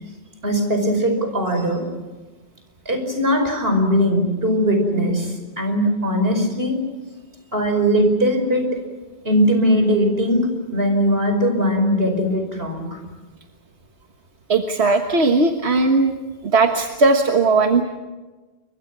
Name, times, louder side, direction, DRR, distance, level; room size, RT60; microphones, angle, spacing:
voice 1, 0.4-1.8 2.9-6.8 7.5-8.8 9.2-13.0, equal, 70° right, 5 dB, 5.6 m, -20 dB
voice 2, 14.5-16.1 16.4-17.8, right 3 dB, 90° right, 4 dB, 1.7 m, -17 dB
29.5 x 24.0 x 6.1 m, 1.2 s
omnidirectional pair, 1.0 m